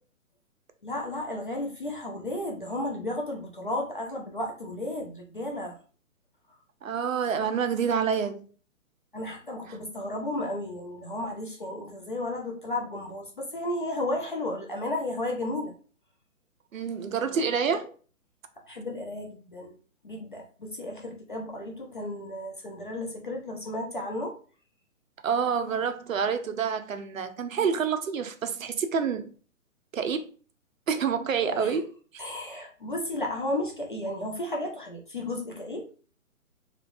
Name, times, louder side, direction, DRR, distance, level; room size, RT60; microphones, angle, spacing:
voice 1, 0.8-5.8 9.1-15.7 18.6-19.7 20.0-24.4 31.4-31.8 32.2-35.9, left 1 dB, 40° left, 0.5 m, -33 dB
voice 2, 6.8-8.4 16.7-17.9 25.2-29.3 29.9-30.2 30.9-31.9, right 6 dB, 65° right, 0.6 m, -27 dB
3.1 x 3.0 x 2.6 m
hypercardioid pair, 165°, 43 cm